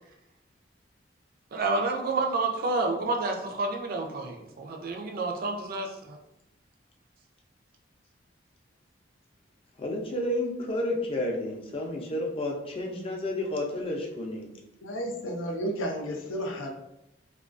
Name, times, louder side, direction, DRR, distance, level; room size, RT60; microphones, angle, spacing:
voice 1, 1.5-6.2, right 3 dB, 50° right, 3 dB, 0.4 m, -29 dB
voice 2, 9.8-14.5, left 1 dB, 30° left, 0 dB, 0.4 m, -31 dB
voice 3, 14.8-16.7, equal, 85° left, 2 dB, 0.5 m, -32 dB
2.3 x 2.3 x 2.4 m, 0.84 s
head